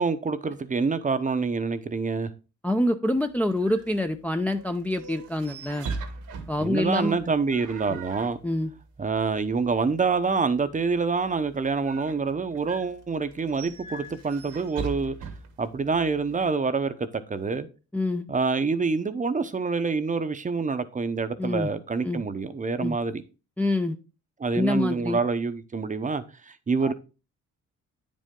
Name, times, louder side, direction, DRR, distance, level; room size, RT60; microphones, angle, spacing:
voice 1, 0.0-2.3 6.6-8.4 9.0-15.1 15.6-17.7 18.3-23.2 24.4-26.9, right 4 dB, 25° right, 0.8 m, -26 dB
voice 2, 2.6-5.9 6.5-7.2 8.4-8.7 17.9-18.3 21.4-21.7 22.0-22.2 22.8-23.0 23.6-24.0 24.5-25.2 26.8-26.9, left 1 dB, 5° left, 0.6 m, -26 dB
sound 1, 3.1-16.5, right 4 dB, 80° right, 1.5 m, -42 dB
9.2 x 5.4 x 3.7 m
cardioid pair, 90°, 30 cm